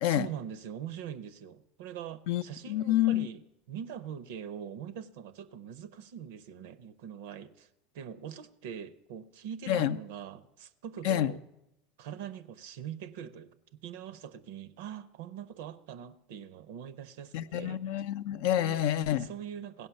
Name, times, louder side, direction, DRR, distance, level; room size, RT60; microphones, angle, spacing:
voice 1, 0.0-3.4 3.7-7.7 7.9-11.4 12.0-17.8 18.5-18.8 19.2-19.9, right 9 dB, 65° right, 0.6 m, -42 dB
voice 2, 2.3-3.3 9.7-10.0 11.0-11.3 17.3-19.3, left 12 dB, 65° left, 0.5 m, -28 dB
16.0 x 5.5 x 6.9 m
hypercardioid pair, 80°, 0 cm